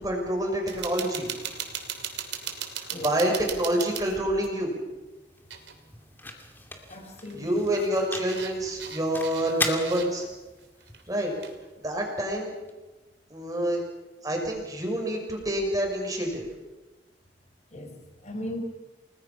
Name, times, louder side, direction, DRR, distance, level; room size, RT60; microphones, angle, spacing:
voice 1, 0.0-1.3 3.0-4.7 7.3-10.2 11.1-11.3 11.8-12.5 13.3-13.8 14.2-16.4, right 1 dB, 20° right, 1 dB, 6.0 m, -27 dB
sound 1, 0.7-4.6 5.5-5.8 6.0-6.1 7.1-10.4 10.8-11.6, right 8 dB, 85° right, 3.0 m, -38 dB
sound 2, 4.8-12.7, left 2 dB, 10° left, 2.5 m, -39 dB
voice 2, 6.9-7.7 17.7-18.6, left 1 dB, 40° left, 5 dB, 4.4 m, -38 dB
29.5 x 20.0 x 5.7 m, 1.1 s
head